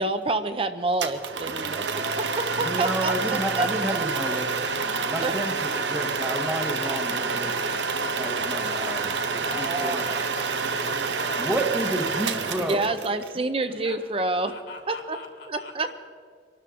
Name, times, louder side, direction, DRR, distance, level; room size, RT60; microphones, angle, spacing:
voice 1, 0.0-4.1 5.2-5.3 9.4-10.2 12.7-14.5 14.9-15.2 15.5-16.1, right 2 dB, 30° right, 0.6 m, -28 dB
sound 1, 1.0-13.3, right 4 dB, 85° right, 1.0 m, -28 dB
voice 2, 2.6-7.6 8.1-10.0 11.4-12.9, right 1 dB, 5° right, 1.0 m, -31 dB
voice 3, 9.4-11.5 13.7-14.0 14.4-15.9, left 3 dB, 65° left, 3.0 m, -42 dB
24.0 x 12.5 x 3.7 m
head